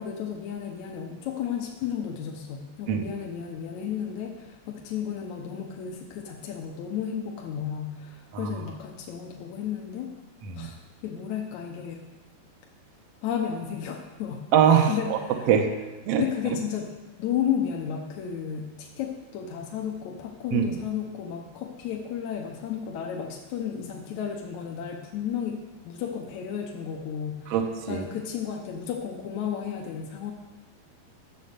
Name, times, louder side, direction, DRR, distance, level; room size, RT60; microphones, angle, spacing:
voice 1, 0.0-10.1 10.6-10.8 11.0-12.0 13.2-14.5 14.9-15.5 16.2-16.9 17.2-25.6 25.9-27.5 27.9-30.3, left 8 dB, 70° left, 1 dB, 1.9 m, -33 dB
voice 2, 14.5-15.2 15.5-15.7 16.1-16.2 20.5-20.6 27.5-28.0, right 8 dB, 80° right, 3 dB, 1.4 m, -22 dB
11.5 x 7.5 x 6.7 m, 1.2 s
omnidirectional pair, 4.4 m